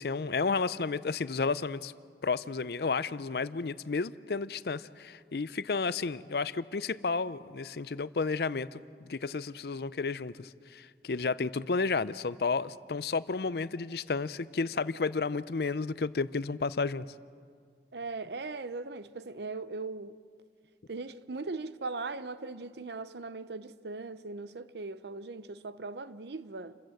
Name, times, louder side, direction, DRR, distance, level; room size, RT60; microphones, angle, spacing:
voice 1, 0.0-1.9 2.2-17.1, left 4 dB, 65° left, 0.5 m, -32 dB
voice 2, 17.9-20.2 20.9-26.8, right 3 dB, 75° right, 0.7 m, -39 dB
29.0 x 14.0 x 7.8 m
head